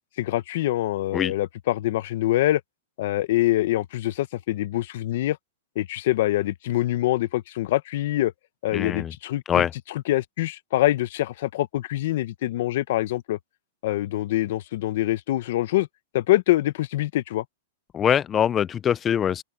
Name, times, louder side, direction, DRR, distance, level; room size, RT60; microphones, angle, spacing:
voice 1, 0.2-2.6 3.0-5.4 5.7-8.3 8.6-9.6 10.1-13.4 13.8-15.9 16.1-17.4, left 15 dB, 60° left, 1.0 m, -24 dB
voice 2, 8.7-9.1 9.5-9.7 17.9-19.4, left 9 dB, 20° left, 0.4 m, -23 dB
open air
hypercardioid pair, 150°, 0 cm